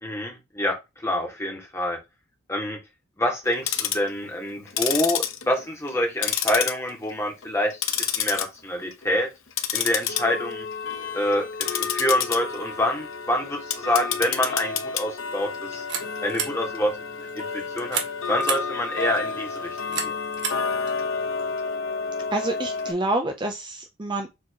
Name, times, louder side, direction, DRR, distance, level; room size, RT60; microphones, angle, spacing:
voice 1, 0.0-2.0 2.5-2.8 3.2-9.3 9.7-10.7 11.1-15.8 16.2-16.9 17.3-18.0 18.3-20.2, left 1 dB, 10° left, 1 dB, 1.5 m, -27 dB
Tick-tock, 3.5-4.1 4.7-6.0 6.2-7.1 7.4-8.4 8.8-9.1 9.5-22.9, left 6 dB, 75° left, 1.0 m, -29 dB
sound 1, 15.4-21.6, right 7 dB, 60° right, 1.3 m, -35 dB
voice 2, 22.3-24.3, right 2 dB, 20° right, 5 dB, 0.5 m, -27 dB
7.0 x 3.0 x 4.6 m, 0.24 s
head